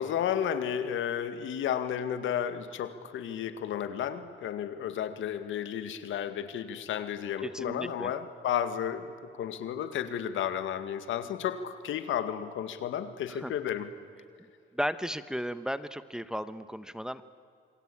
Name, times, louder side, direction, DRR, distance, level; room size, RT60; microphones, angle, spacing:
voice 1, 0.0-13.9, left 9 dB, 80° left, 11 dB, 2.1 m, -32 dB
voice 2, 7.4-8.1 13.3-13.5 14.7-17.2, equal, 5° right, 12 dB, 1.1 m, -35 dB
27.5 x 25.0 x 8.7 m, 2.4 s
cardioid pair, 90°, 20 cm